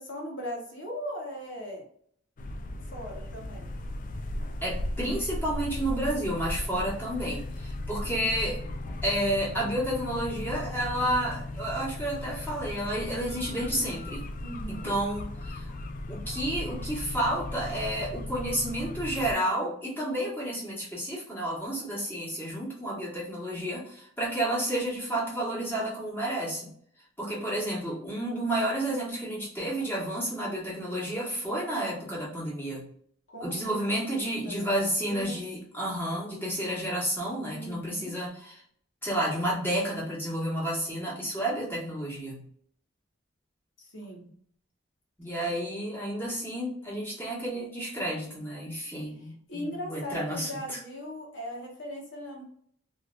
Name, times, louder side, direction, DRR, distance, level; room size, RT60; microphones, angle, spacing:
voice 1, 0.0-1.8 2.8-3.7 14.4-14.9 33.3-35.4 36.6-36.8 37.5-38.1 43.8-44.2 49.5-52.4, equal, 65° left, -1 dB, 1.3 m, -39 dB
sound 1, 2.4-19.3, left 1 dB, 45° left, 0.4 m, -36 dB
voice 2, 4.6-8.6 9.0-14.3 14.7-15.7 16.1-26.7 27.2-32.9 33.4-38.6 39.0-42.4 45.2-50.8, right 1 dB, 10° left, -6 dB, 1.4 m, -31 dB
3.2 x 2.8 x 2.4 m, 0.63 s
head